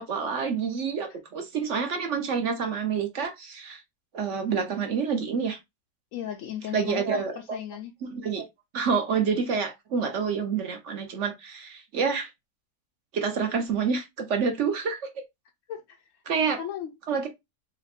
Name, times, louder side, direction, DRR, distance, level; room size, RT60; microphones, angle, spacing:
voice 1, 0.0-3.8 4.1-5.6 6.7-7.4 8.0-8.4 8.7-12.3 13.1-15.0 16.3-16.6 17.1-17.3, right 6 dB, 55° right, 1.0 m, -28 dB
voice 2, 6.1-7.9 15.7-16.1 16.6-17.3, left 10 dB, 70° left, 0.8 m, -37 dB
4.1 x 2.1 x 4.2 m
omnidirectional pair, 1.7 m